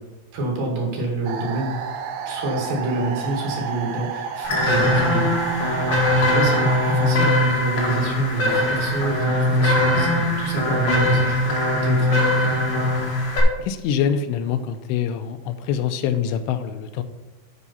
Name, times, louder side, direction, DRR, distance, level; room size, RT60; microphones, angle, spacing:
voice 1, 0.3-1.8 2.3-11.5 11.8-12.3, right 2 dB, 60° right, -1 dB, 3.6 m, -27 dB
sound 1, 1.2-7.2, right 6 dB, 80° right, 2.1 m, -31 dB
sound 2, 4.4-13.4, left 1 dB, 70° left, 1.2 m, -21 dB
voice 2, 13.6-17.0, left 8 dB, 85° left, 9 dB, 2.7 m, -25 dB
9.9 x 4.7 x 5.6 m, 1.1 s
omnidirectional pair, 4.9 m